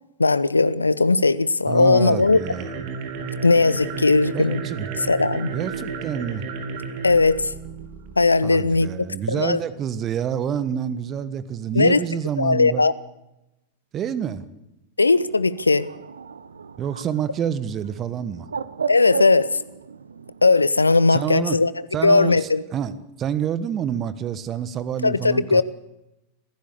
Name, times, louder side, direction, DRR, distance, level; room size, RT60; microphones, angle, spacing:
voice 1, 0.2-2.4 3.4-4.6 5.0-5.5 7.0-7.5 8.2-8.9 9.3-9.6 11.7-12.0 12.4-12.9 15.0-15.9 18.9-19.6 20.4-21.7 22.0-22.6 25.0-25.6, left 3 dB, 80° left, 18 dB, 0.8 m, -18 dB
voice 2, 1.7-2.7 4.3-4.9 5.5-6.4 8.4-12.8 13.9-14.5 16.8-18.5 21.1-21.6 21.9-25.6, right 8 dB, 30° right, 15 dB, 1.4 m, -28 dB
sound 1, 2.1-8.3, right 5 dB, 45° right, 2.8 m, -33 dB
Bird, 15.1-20.7, right 6 dB, 70° right, 1.0 m, -35 dB
26.0 x 16.0 x 6.9 m, 0.92 s
figure-of-eight pair, 90°, 0 cm